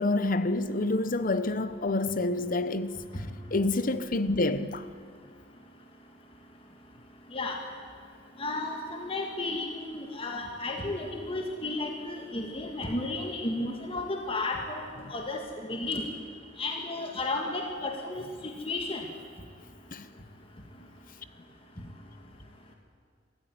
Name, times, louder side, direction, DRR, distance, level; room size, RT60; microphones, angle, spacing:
voice 1, 0.0-3.0 3.5-4.8 19.9-20.0, left 2 dB, 45° left, 1.0 m, -27 dB
voice 2, 8.4-14.8 15.1-15.4 15.7-16.0 16.6-18.2 18.7-19.0, left 2 dB, 30° left, 1.8 m, -33 dB
23.5 x 14.0 x 9.4 m
head